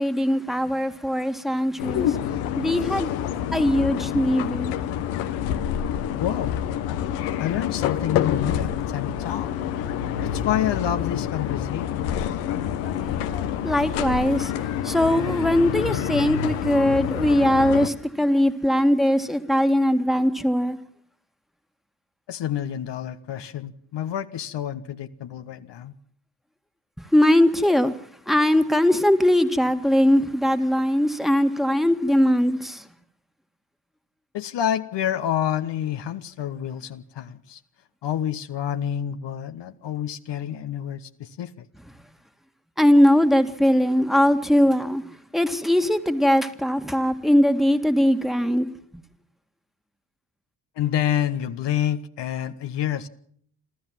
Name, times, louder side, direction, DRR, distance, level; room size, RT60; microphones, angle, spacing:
voice 1, 0.0-2.2 2.6-3.1 3.5-4.8 13.0-13.3 13.6-14.5 14.8-20.8 27.0-27.9 28.3-32.8 42.8-48.7, left 1 dB, ahead, 2.0 m, -20 dB
sound 1, 1.8-17.9, left 10 dB, 85° left, 1.3 m, -27 dB
voice 2, 6.2-6.5 7.4-9.5 10.2-12.1 22.3-25.9 34.3-37.6 38.0-41.7 50.8-53.1, left 10 dB, 60° left, 1.2 m, -28 dB
28.0 x 13.5 x 7.5 m
hypercardioid pair, 45°, 46 cm